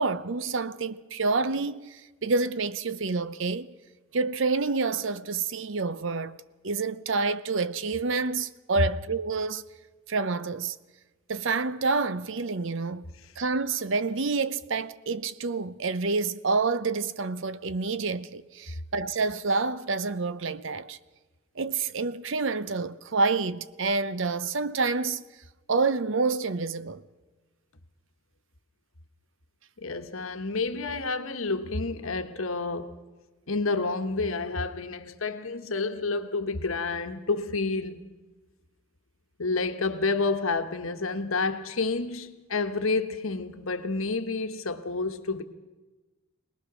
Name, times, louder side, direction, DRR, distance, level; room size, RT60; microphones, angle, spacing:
voice 1, 0.0-3.7 4.1-6.4 6.6-9.6 10.1-10.8 11.3-21.0 21.6-25.2 25.7-27.0, right 4 dB, 60° right, 0.7 m, -28 dB
voice 2, 29.8-33.0 33.5-38.1 39.4-45.4, left 3 dB, 75° left, 1.2 m, -29 dB
22.5 x 19.5 x 6.2 m
head